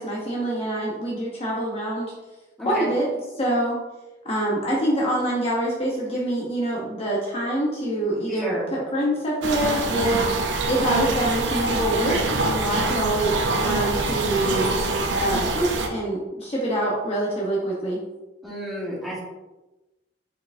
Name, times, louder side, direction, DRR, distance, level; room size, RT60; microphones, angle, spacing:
voice 1, 0.0-2.1 2.7-3.1 3.4-3.8 4.2-10.3 10.7-14.7 15.2-18.0, right 1 dB, 35° left, -4 dB, 0.9 m, -25 dB
voice 2, 2.6-2.9 8.3-8.7 18.4-19.2, equal, ahead, -6 dB, 1.4 m, -32 dB
sound 1, 9.4-15.9, right 2 dB, 90° right, 0.6 m, -25 dB
4.7 x 4.3 x 2.6 m, 1.1 s
head